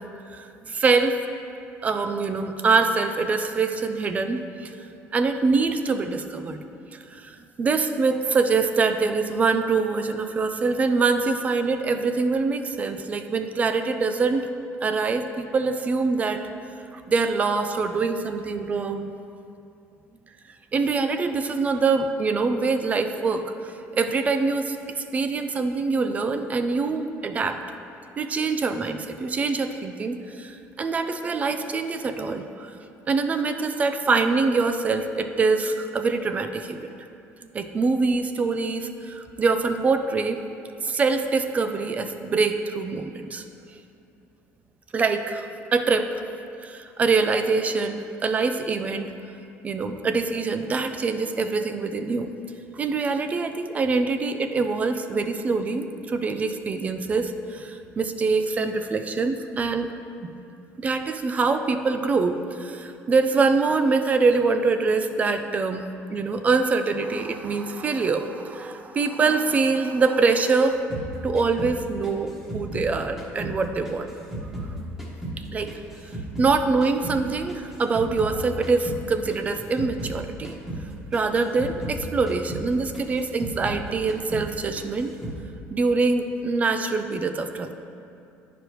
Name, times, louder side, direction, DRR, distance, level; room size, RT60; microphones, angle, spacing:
voice 1, 0.3-1.2 1.8-6.6 6.9-14.5 14.8-16.4 16.9-19.1 20.7-27.6 28.2-32.7 33.1-36.8 37.5-40.4 40.8-43.4 44.9-46.2 46.6-49.1 49.6-52.3 52.7-59.9 60.2-60.3 60.8-65.8 66.1-70.8 71.2-74.1 75.5-75.7 76.4-80.5 81.1-85.2 85.7-87.7, right 4 dB, 25° right, 8 dB, 0.3 m, -24 dB
sound 1, 70.9-73.6 73.8-76.5 76.8-80.2 80.4-80.9 81.1-83.8 84.1-84.5 84.8-85.4, right 1 dB, 10° right, 1.2 m, -35 dB
9.8 x 5.0 x 3.0 m, 2.5 s
cardioid pair, 130°, 6 cm